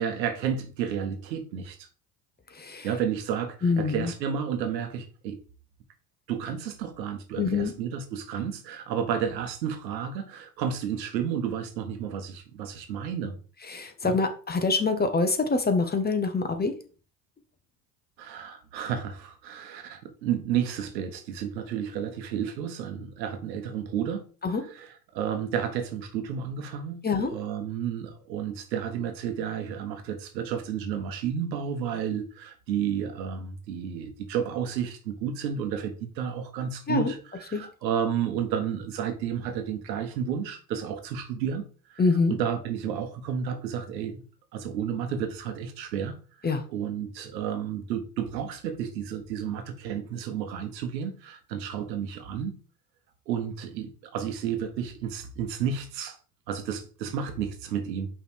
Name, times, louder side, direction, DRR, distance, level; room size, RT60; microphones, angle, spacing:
voice 1, 0.0-1.8 2.8-5.4 6.3-13.3 14.0-14.2 18.2-24.2 24.7-42.0 42.3-44.2 44.5-46.1 46.5-52.5 53.3-56.2 56.5-58.1, right 8 dB, 80° right, 1.3 m, -31 dB
voice 2, 2.5-2.9 3.6-4.1 7.4-7.7 13.7-16.7 24.4-24.6 27.0-27.3 36.9-37.1 37.5-37.6 42.0-42.3 46.4-46.6, left 4 dB, 20° left, 1.2 m, -25 dB
5.6 x 3.6 x 4.7 m
hypercardioid pair, 75°, 50 cm